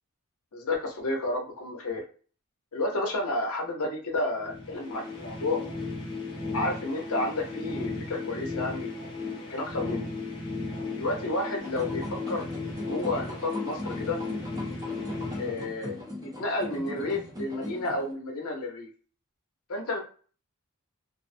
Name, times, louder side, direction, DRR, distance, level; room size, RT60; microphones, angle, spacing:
voice 1, 0.5-2.0 2.7-5.6 6.5-9.1 9.5-10.1 11.0-12.4 12.9-14.2 15.4-18.9 19.7-20.0, left 2 dB, 70° left, 1 dB, 0.7 m, -31 dB
sound 1, 4.4-16.3, left 3 dB, 20° left, 0.9 m, -36 dB
sound 2, 11.6-18.1, left 1 dB, 15° right, 0.6 m, -39 dB
2.5 x 2.0 x 2.5 m, 0.40 s
head